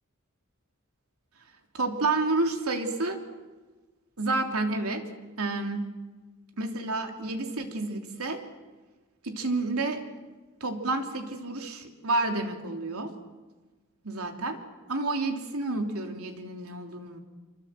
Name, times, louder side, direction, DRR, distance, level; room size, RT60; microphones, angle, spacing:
voice 1, 1.7-3.2 4.2-5.1 5.4-5.9 6.6-8.4 9.2-10.0 10.6-13.1 14.0-14.6 14.9-17.2, right 2 dB, 90° right, 5 dB, 3.1 m, -30 dB
26.5 x 24.0 x 7.6 m, 1.2 s
head